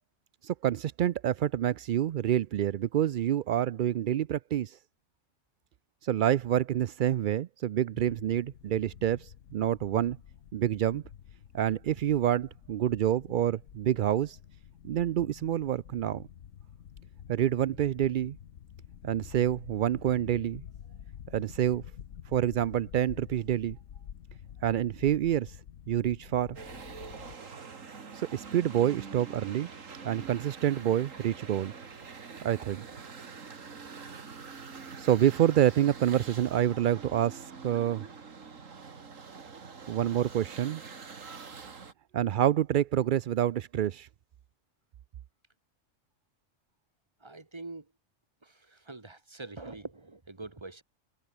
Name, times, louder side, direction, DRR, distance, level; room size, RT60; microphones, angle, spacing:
voice 1, 0.4-4.8 6.0-10.2 10.5-11.0 11.5-14.4 14.8-16.2 17.3-18.4 19.0-20.6 21.3-21.8 22.3-23.8 24.6-25.6 25.9-26.6 28.1-29.7 30.0-31.7 32.4-32.8 35.0-38.1 39.9-40.8 42.1-44.1, right 11 dB, 65° right, 0.5 m, -27 dB
sound 1, 7.9-27.4, left 9 dB, 75° left, 1.3 m, -49 dB
sound 2, 26.6-41.9, right 5 dB, 80° right, 2.3 m, -45 dB
voice 2, 47.2-47.9 48.4-50.8, right 3 dB, 20° right, 1.6 m, -44 dB
omnidirectional pair, 1.3 m